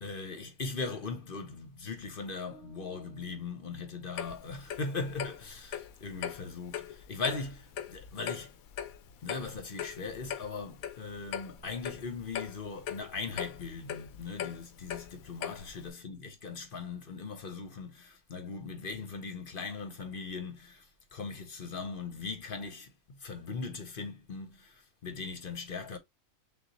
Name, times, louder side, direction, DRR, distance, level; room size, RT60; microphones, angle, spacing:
voice 1, 0.0-8.5 9.2-26.0, left 4 dB, 45° left, 1.0 m, -39 dB
sound 1, 2.5-4.7, right 5 dB, 15° left, 1.1 m, -60 dB
Clock, 4.2-15.9, left 9 dB, 80° left, 1.1 m, -40 dB
6.6 x 2.4 x 2.8 m
omnidirectional pair, 1.4 m